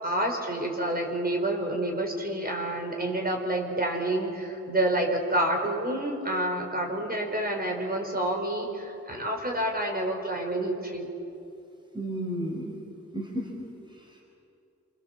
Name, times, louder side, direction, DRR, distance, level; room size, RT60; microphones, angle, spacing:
voice 1, 0.0-11.1, right 1 dB, 30° right, 1 dB, 5.0 m, -28 dB
voice 2, 11.9-12.8 13.1-14.2, equal, 15° right, 0 dB, 4.1 m, -34 dB
28.0 x 24.5 x 7.6 m, 2.7 s
wide cardioid pair, 75°, 29 cm